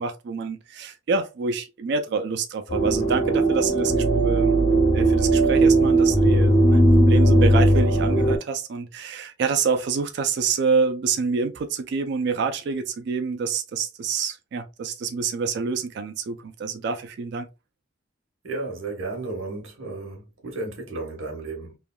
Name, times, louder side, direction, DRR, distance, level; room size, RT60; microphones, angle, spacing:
voice 1, 0.0-4.6 4.9-17.5, right 5 dB, 55° right, 0.3 m, -27 dB
sound 1, 2.7-8.4, right 1 dB, 70° left, 1.5 m, -18 dB
voice 2, 18.4-21.8, right 3 dB, 85° right, 1.2 m, -33 dB
3.3 x 2.2 x 2.2 m
head